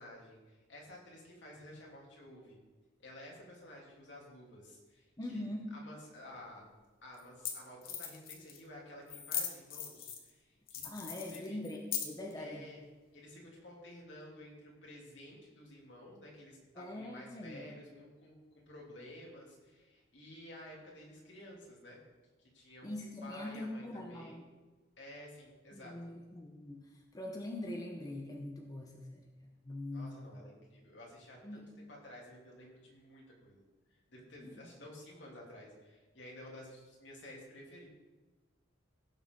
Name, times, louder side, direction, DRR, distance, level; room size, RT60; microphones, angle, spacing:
voice 1, 0.0-2.6 3.0-6.7 7.0-11.6 12.4-12.8 13.1-22.0 22.5-22.9 23.2-24.4 25.0-26.0 29.9-37.9, left 1 dB, 70° left, -3 dB, 3.0 m, -52 dB
voice 2, 5.2-5.7 10.8-12.7 16.8-17.6 22.8-24.4 25.7-29.2 29.6-30.4 31.4-31.7 34.4-34.7, left 1 dB, 20° left, 1 dB, 0.9 m, -43 dB
sound 1, 6.4-6.5 7.2-7.3 7.4-7.5 7.8-8.6 9.1-10.3 10.7-12.3, left 8 dB, 50° left, 1.3 m, -39 dB
16.0 x 7.1 x 3.9 m, 1.2 s
head